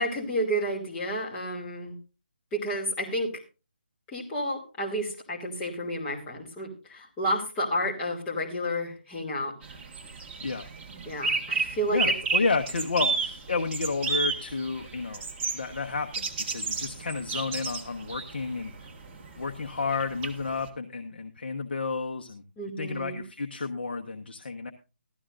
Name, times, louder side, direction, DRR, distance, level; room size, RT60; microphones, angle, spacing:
voice 1, 0.0-1.9 2.5-3.4 4.1-9.5 11.1-12.0 22.6-23.2, equal, 15° left, -4 dB, 2.6 m, -31 dB
sound 1, 9.6-20.7, right 4 dB, 20° right, 1.6 m, -32 dB
voice 2, 11.9-15.3 15.5-18.7 19.4-22.4 22.8-24.7, left 4 dB, 65° left, 4 dB, 1.1 m, -31 dB
15.5 x 13.0 x 2.6 m, 0.30 s
figure-of-eight pair, 150°, 6 cm